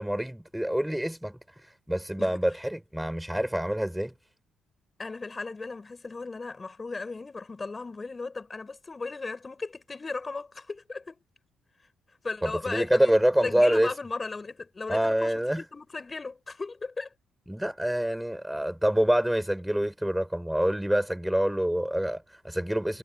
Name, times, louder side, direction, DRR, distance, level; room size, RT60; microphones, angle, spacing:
voice 1, 0.0-1.4 1.9-4.1 12.4-13.9 14.9-15.6 17.5-23.0, equal, 5° right, 6.2 m, -26 dB
voice 2, 5.0-11.2 12.2-17.1, left 3 dB, 25° left, 7.1 m, -36 dB
cardioid pair, 90°, 0 cm